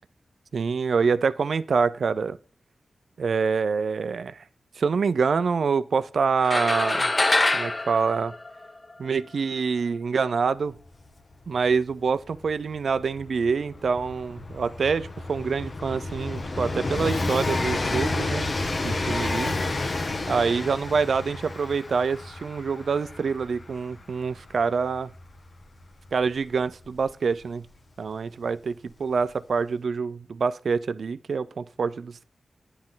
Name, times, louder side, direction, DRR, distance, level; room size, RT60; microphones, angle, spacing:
voice 1, 0.5-2.4 3.2-4.4 4.8-7.1 7.5-8.3 9.0-10.7 11.5-18.5 18.8-19.5 20.3-25.1 26.1-27.7 28.0-32.2, right 5 dB, 75° right, 0.6 m, -26 dB
sound 1, 6.4-9.1, left 2 dB, 35° left, 0.7 m, -25 dB
Train, 10.8-10.9 11.1-27.7 28.7-28.8, left 2 dB, 50° left, 1.3 m, -31 dB
10.0 x 9.7 x 3.9 m
cardioid pair, 60°, 0 cm